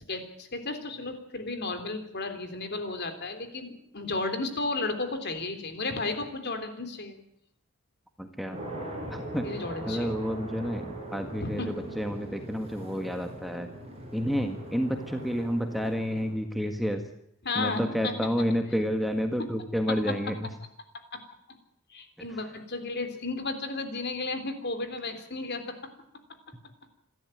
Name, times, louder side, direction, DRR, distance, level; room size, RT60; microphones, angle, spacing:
voice 1, 0.0-7.2 9.4-10.1 11.4-11.7 17.4-18.4 21.1-21.2 21.9-25.6, left 3 dB, 50° left, 8 dB, 3.6 m, -33 dB
voice 2, 8.2-8.6 9.1-9.5 9.8-13.7 14.1-17.0 17.5-20.5 22.2-22.3, equal, ahead, 5 dB, 1.6 m, -30 dB
sound 1, 8.5-16.3, right 1 dB, 30° right, 7.0 m, -40 dB
28.0 x 13.0 x 9.2 m, 0.73 s
head